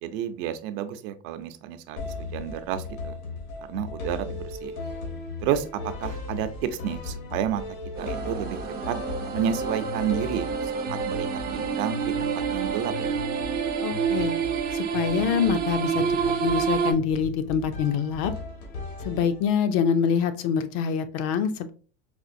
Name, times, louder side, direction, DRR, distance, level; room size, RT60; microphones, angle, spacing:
voice 1, 0.0-3.2 3.6-4.8 5.4-7.6 8.0-8.6 8.9-9.0 9.3-13.2, right 9 dB, 65° right, 9 dB, 0.6 m, -31 dB
sound 1, 2.0-19.8, left 3 dB, 80° left, 1.4 m, -37 dB
sound 2, 7.9-16.9, right 6 dB, 25° right, 0.4 m, -28 dB
voice 2, 13.8-14.4 14.7-18.3 19.0-21.7, left 7 dB, 60° left, 10 dB, 0.5 m, -25 dB
4.3 x 2.4 x 2.6 m, 0.38 s
supercardioid pair, 145°, 42 cm